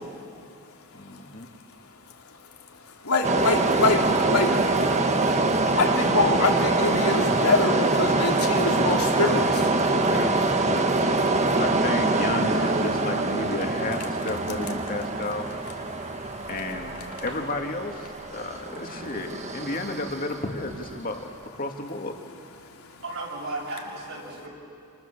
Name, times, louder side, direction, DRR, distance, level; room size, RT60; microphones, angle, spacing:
voice 1, 0.9-1.5 9.7-10.8 11.3-15.5 16.5-21.2 21.6-22.1, left 2 dB, 40° left, 3 dB, 2.3 m, -32 dB
voice 2, 2.8-9.8 11.2-11.4 15.9-16.5 22.6-23.0, left 3 dB, 80° left, 1 dB, 3.1 m, -26 dB
sound 1, 3.2-20.9, right 2 dB, 30° right, 1.4 m, -24 dB
voice 3, 23.0-24.5, right 2 dB, 65° right, -2 dB, 7.4 m, -35 dB
28.5 x 27.0 x 7.5 m, 2.4 s
head